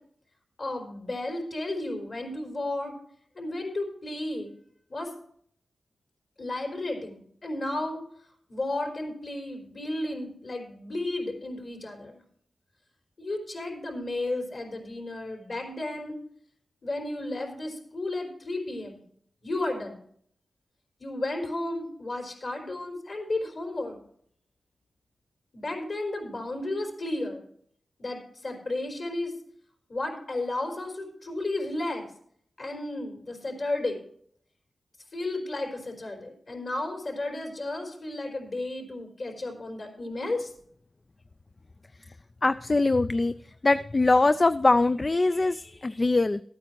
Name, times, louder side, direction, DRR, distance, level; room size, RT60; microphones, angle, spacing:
voice 1, 0.6-2.9 3.4-4.5 4.9-5.1 6.4-8.0 8.5-12.2 13.2-16.2 16.8-19.0 19.4-20.0 21.0-24.0 25.5-27.4 28.0-29.3 29.9-32.1 32.6-34.0 35.1-40.5, left 2 dB, 55° left, 2 dB, 4.2 m, -33 dB
voice 2, 42.4-43.3 43.6-46.4, left 2 dB, 35° left, 12 dB, 0.4 m, -22 dB
13.5 x 8.8 x 4.5 m, 0.62 s
wide cardioid pair, 75°, 0 cm